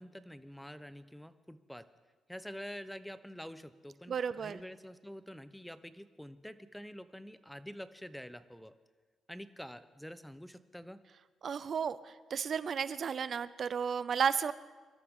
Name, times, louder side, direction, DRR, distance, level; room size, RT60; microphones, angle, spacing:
voice 1, 0.0-1.9 2.3-8.8 9.3-11.0, equal, 5° left, 13 dB, 0.7 m, -47 dB
voice 2, 4.1-4.6 11.4-14.5, right 7 dB, 50° right, 15 dB, 0.4 m, -33 dB
24.5 x 13.0 x 3.7 m, 1.4 s
cardioid pair, 90°, 0 cm